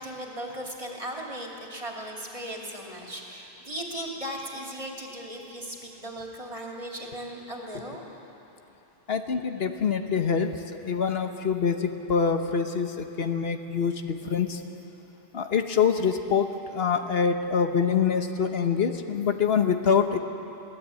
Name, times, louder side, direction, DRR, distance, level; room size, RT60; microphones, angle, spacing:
voice 1, 0.0-8.0, equal, 35° right, -1 dB, 2.7 m, -37 dB
voice 2, 9.1-14.6 15.3-20.2, left 6 dB, 75° left, 6 dB, 1.3 m, -25 dB
23.0 x 16.5 x 8.4 m, 3.0 s
omnidirectional pair, 1.0 m